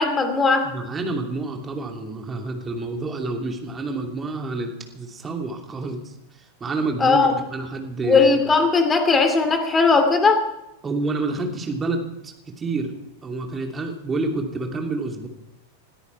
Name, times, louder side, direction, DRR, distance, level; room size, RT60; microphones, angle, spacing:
voice 1, 0.0-0.7 7.0-7.3 8.0-10.4, left 4 dB, 15° left, 7 dB, 2.7 m, -18 dB
voice 2, 0.6-6.1 6.6-8.4 10.8-12.9 13.2-15.3, right 3 dB, 20° right, 3 dB, 2.8 m, -28 dB
21.0 x 13.5 x 4.6 m, 0.88 s
figure-of-eight pair, 90°, 0 cm